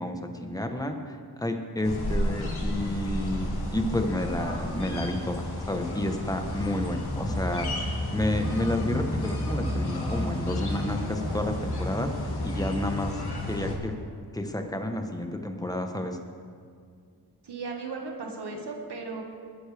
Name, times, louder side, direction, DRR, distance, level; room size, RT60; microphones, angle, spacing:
voice 1, 0.0-13.2 13.5-13.9 14.3-16.2, left 1 dB, 10° left, 5 dB, 1.1 m, -31 dB
sound 1, 1.8-13.7, left 1 dB, 75° left, 2.4 m, -31 dB
voice 2, 17.4-19.2, right 4 dB, 85° right, 1 dB, 1.8 m, -36 dB
21.5 x 9.9 x 3.5 m, 2.1 s
wide cardioid pair, 95°, 39 cm